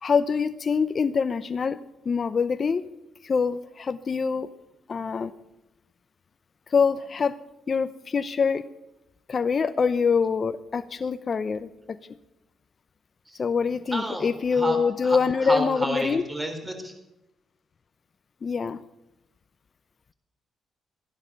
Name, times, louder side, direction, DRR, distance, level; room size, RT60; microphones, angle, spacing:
voice 1, 0.0-1.8 2.1-2.9 3.2-4.5 4.9-5.3 6.7-7.4 7.7-8.7 9.3-12.0 13.4-16.2 18.4-18.8, left 5 dB, 40° left, 10 dB, 0.7 m, -25 dB
voice 2, 13.3-14.8 15.0-16.9, right 1 dB, 15° right, 5 dB, 4.0 m, -31 dB
14.5 x 11.0 x 6.8 m, 0.92 s
cardioid pair, 90°, 0 cm